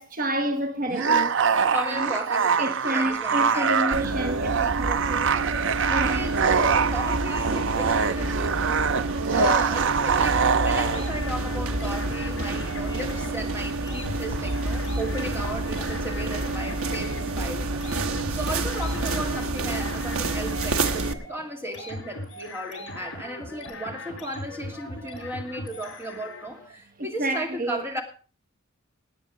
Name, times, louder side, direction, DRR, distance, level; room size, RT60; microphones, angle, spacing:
voice 1, 0.0-1.3 1.9-2.1 2.6-5.3 5.9-6.3 27.2-28.0, right 1 dB, 40° right, 0.9 m, -29 dB
sound 1, 0.9-11.1, right 6 dB, 65° right, 0.6 m, -24 dB
voice 2, 1.7-4.0 5.9-28.0, right 1 dB, 10° right, 2.5 m, -36 dB
sound 2, 3.9-21.1, right 2 dB, 80° right, 1.1 m, -29 dB
Nobody's Business, 10.9-26.7, left 1 dB, 60° left, 6.9 m, -39 dB
17.5 x 9.3 x 5.0 m
head